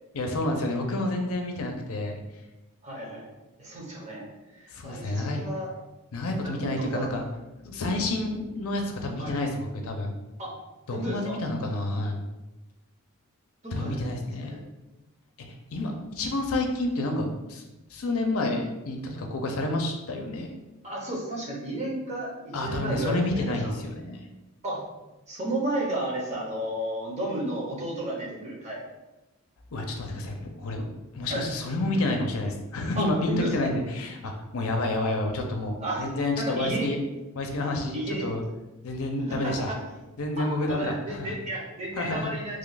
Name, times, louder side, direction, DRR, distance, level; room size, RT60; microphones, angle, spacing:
voice 1, 0.1-2.2 4.7-5.4 6.1-7.3 7.6-10.2 10.9-12.2 13.7-14.6 15.4-17.6 17.9-20.5 22.5-24.3 29.7-37.0 37.3-38.4 38.8-39.7 40.2-41.4 42.0-42.3, left 2 dB, 70° left, 3 dB, 0.5 m, -29 dB
voice 2, 2.8-3.3 3.6-4.3 4.5-5.7 6.4-7.1 9.2-9.4 10.4-10.5 10.9-11.4 13.6-14.1 14.4-14.6 19.2-19.3 20.8-23.7 24.6-24.8 25.3-28.8 31.3-31.5 33.0-33.7 35.8-36.1 36.3-36.9 37.9-38.3 39.3-39.8 40.4-42.6, right 1 dB, 30° right, -3 dB, 0.8 m, -33 dB
3.1 x 2.3 x 3.9 m, 1.0 s
head